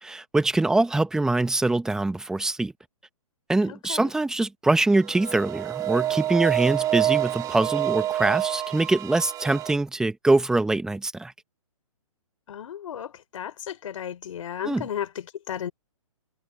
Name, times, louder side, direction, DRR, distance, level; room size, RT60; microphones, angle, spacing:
voice 1, 0.0-2.7 3.5-11.3 14.6-14.9, right 2 dB, 5° right, 1.2 m, -23 dB
voice 2, 3.7-4.1 12.5-15.7, left 9 dB, 60° left, 3.8 m, -34 dB
sound 1, 5.0-9.7, right 13 dB, 20° right, 3.1 m, -27 dB
hypercardioid pair, 150°, 18 cm